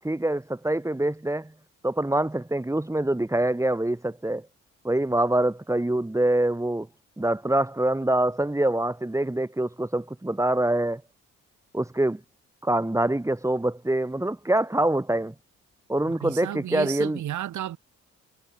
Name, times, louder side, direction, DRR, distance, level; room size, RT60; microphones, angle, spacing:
voice 1, 0.0-1.5 1.8-4.5 4.8-6.9 7.2-11.0 11.7-12.2 12.6-15.3 15.9-17.2, right 1 dB, 10° right, 4.4 m, -25 dB
voice 2, 16.2-17.8, right 12 dB, 75° right, 5.0 m, -32 dB
cardioid pair, 90°, 30 cm